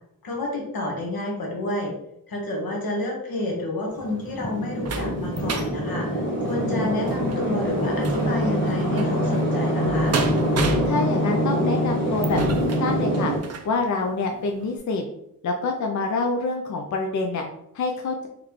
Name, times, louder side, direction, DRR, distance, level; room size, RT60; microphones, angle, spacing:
voice 1, 0.2-1.9 2.3-10.2, left 2 dB, 80° left, 0 dB, 1.2 m, -29 dB
sound 1, 3.9-13.7 14.3-14.4 14.8-14.9, right 2 dB, 45° right, 0.5 m, -32 dB
sound 2, 4.0-13.4, equal, 35° left, 1.4 m, -24 dB
voice 2, 10.9-13.3 13.7-15.0 15.4-17.4 17.7-18.3, left 3 dB, 55° left, 2 dB, 0.4 m, -26 dB
3.9 x 3.1 x 3.0 m, 0.78 s
wide cardioid pair, 165°, 35 cm